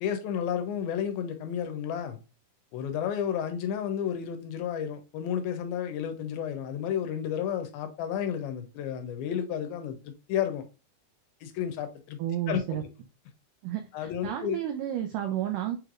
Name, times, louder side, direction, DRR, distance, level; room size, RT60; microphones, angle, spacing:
voice 1, 0.0-2.2 2.7-10.6 11.4-12.2 12.5-12.6 13.9-14.6, left 9 dB, 80° left, 2.4 m, -31 dB
voice 2, 12.2-12.8 13.6-15.8, right 11 dB, 90° right, 1.8 m, -31 dB
6.7 x 3.2 x 2.4 m
omnidirectional pair, 4.5 m